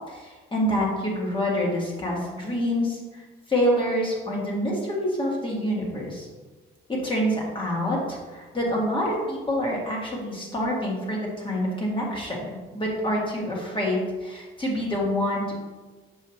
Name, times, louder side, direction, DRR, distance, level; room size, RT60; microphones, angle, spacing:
voice 1, 0.1-3.2 3.5-6.3 6.9-15.5, equal, 25° left, -3 dB, 2.0 m, -27 dB
7.3 x 5.0 x 3.0 m, 1.3 s
cardioid pair, 95°, 21 cm